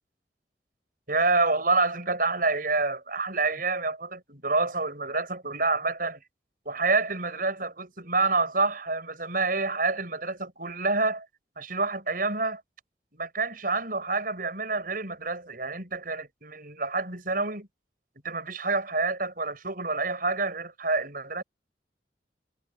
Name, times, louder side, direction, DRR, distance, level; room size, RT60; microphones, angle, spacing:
voice 1, 1.1-6.2 6.7-11.3 11.6-12.6 13.1-17.7 18.2-21.4, right 3 dB, 50° right, 7.6 m, -28 dB
head